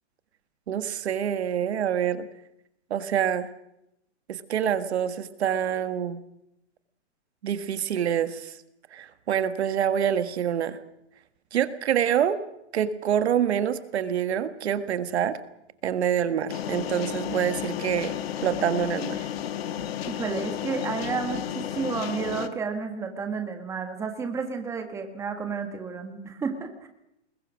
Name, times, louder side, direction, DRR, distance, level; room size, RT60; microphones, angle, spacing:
voice 1, 0.7-2.3 2.9-3.5 4.3-6.2 7.4-8.5 8.9-10.8 11.5-12.4 12.7-15.4 15.8-18.1 18.4-19.3, right 9 dB, 65° right, 11 dB, 1.7 m, -26 dB
sound 1, 16.5-22.5, left 10 dB, 55° left, 1.6 m, -32 dB
voice 2, 20.1-26.9, right 5 dB, 10° right, 5 dB, 1.5 m, -31 dB
26.5 x 21.0 x 6.3 m, 0.84 s
hypercardioid pair, 160°, 36 cm